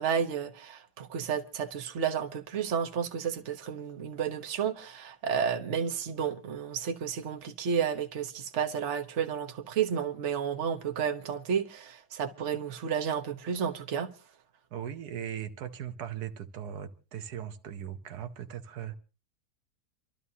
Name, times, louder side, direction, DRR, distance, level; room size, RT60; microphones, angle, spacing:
voice 1, 0.0-14.1, right 7 dB, 50° right, 1.3 m, -31 dB
voice 2, 14.7-19.0, right 9 dB, 85° right, 1.5 m, -39 dB
29.0 x 12.5 x 2.8 m
omnidirectional pair, 1.6 m